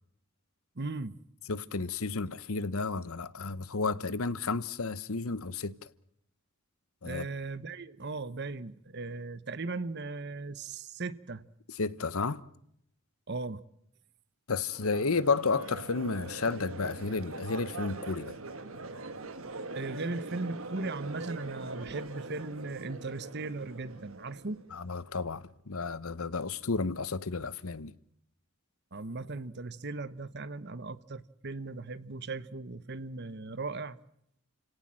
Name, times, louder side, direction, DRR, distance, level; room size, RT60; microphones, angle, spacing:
voice 1, 0.8-1.2 7.0-11.5 13.3-13.6 19.7-24.6 28.9-34.0, right 3 dB, 50° right, 1.0 m, -38 dB
voice 2, 1.5-5.9 7.0-7.3 11.7-12.4 14.5-18.4 24.7-27.9, left 4 dB, 75° left, 1.0 m, -32 dB
Crowd, 14.7-24.8, right 3 dB, 65° right, 1.8 m, -42 dB
29.5 x 17.5 x 7.5 m
head